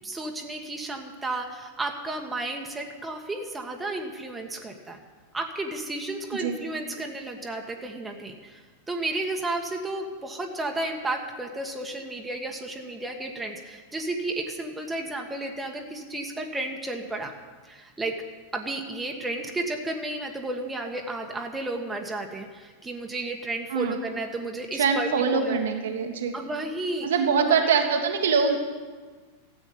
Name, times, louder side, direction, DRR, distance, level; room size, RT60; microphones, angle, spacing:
voice 1, 0.0-5.0 5.3-17.3 17.6-18.1 18.5-25.6 26.3-27.1 27.4-27.7 28.4-28.6, right 2 dB, 10° right, 2 dB, 1.6 m, -33 dB
voice 2, 24.7-26.3 27.0-28.6, right 6 dB, 60° right, 3 dB, 1.5 m, -23 dB
13.5 x 8.8 x 9.1 m, 1.4 s
figure-of-eight pair, 90°, 0 cm